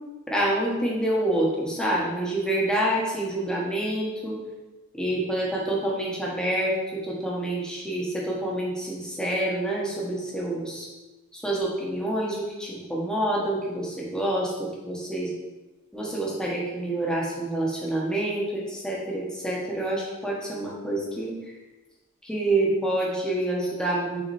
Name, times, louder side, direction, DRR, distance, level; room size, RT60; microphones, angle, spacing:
voice 1, 0.3-4.4 4.9-10.9 11.3-15.3 15.9-21.3 22.2-24.2, right 1 dB, 5° left, -4 dB, 1.3 m, -27 dB
6.2 x 4.1 x 4.3 m, 1.1 s
head